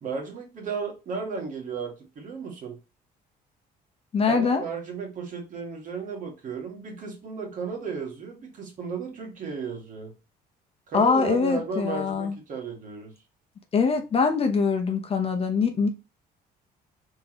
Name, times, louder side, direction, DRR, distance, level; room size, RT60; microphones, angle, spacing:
voice 1, 0.0-2.8 4.3-10.1 10.9-13.1, right 5 dB, 50° right, 1.9 m, -34 dB
voice 2, 4.1-4.6 10.9-12.3 13.7-15.9, left 5 dB, 35° left, 0.8 m, -23 dB
3.6 x 3.5 x 3.1 m
cardioid pair, 110°, 17 cm